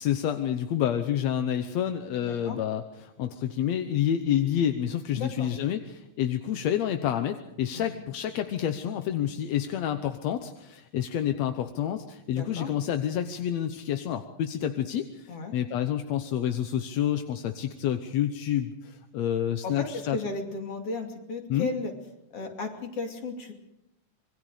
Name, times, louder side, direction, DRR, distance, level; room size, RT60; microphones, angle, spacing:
voice 1, 0.0-20.2 21.5-21.7, left 10 dB, 65° left, 8 dB, 1.9 m, -29 dB
voice 2, 2.2-2.6 5.1-5.5 7.7-8.0 12.3-12.7 15.3-15.5 19.6-21.9 22.3-23.5, left 3 dB, 45° left, 3 dB, 3.5 m, -35 dB
26.0 x 22.5 x 5.0 m, 0.88 s
omnidirectional pair, 3.8 m